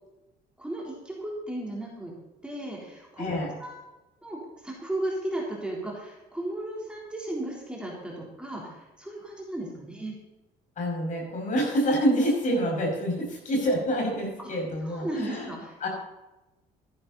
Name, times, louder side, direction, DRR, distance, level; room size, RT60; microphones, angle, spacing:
voice 1, 0.6-2.2 2.4-3.8 4.2-10.2 14.8-15.9, right 1 dB, 5° right, -3 dB, 3.7 m, -35 dB
voice 2, 3.2-3.6 10.8-15.5 15.8-15.9, equal, 50° left, -1 dB, 5.7 m, -27 dB
14.0 x 11.0 x 4.2 m, 1.0 s
cardioid pair, 110°, 17 cm